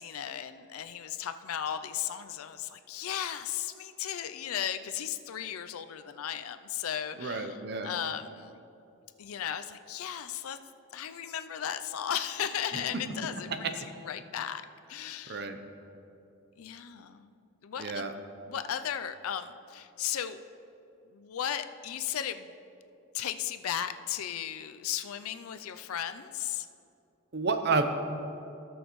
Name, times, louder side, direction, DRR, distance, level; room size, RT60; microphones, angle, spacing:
voice 1, 0.0-7.6 7.8-8.6 9.2-10.6 10.9-14.6 14.9-15.5 16.6-17.4 17.6-18.1 18.5-20.4 21.1-22.5 23.1-26.7, left 9 dB, 85° left, 11 dB, 0.4 m, -36 dB
voice 2, 7.2-7.9 12.7-12.8 15.3-15.6 17.8-18.1 27.3-27.8, right 4 dB, 50° right, 7 dB, 0.6 m, -30 dB
18.0 x 6.3 x 3.1 m, 2.7 s
head